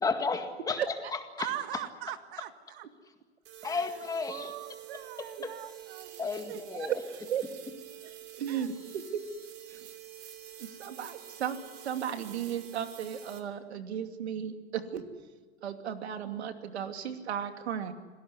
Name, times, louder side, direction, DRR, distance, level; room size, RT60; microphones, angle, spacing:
voice 1, 0.0-0.8 1.1-1.5 3.6-4.5 5.2-5.5 6.2-6.9, left 4 dB, 10° left, 6 dB, 2.0 m, -33 dB
voice 2, 1.4-2.9 3.6-4.0 4.3-6.6 8.5-8.7, right 13 dB, 50° right, 10 dB, 1.8 m, -41 dB
sound 1, 3.4-13.4, right 12 dB, 30° right, 3.1 m, -48 dB
voice 3, 6.8-7.4 8.3-9.2 9.7-9.9 10.6-15.0 15.6-17.9, right 9 dB, 75° right, 7 dB, 2.7 m, -35 dB
26.5 x 17.0 x 9.6 m, 1.4 s
hypercardioid pair, 130°, 33 cm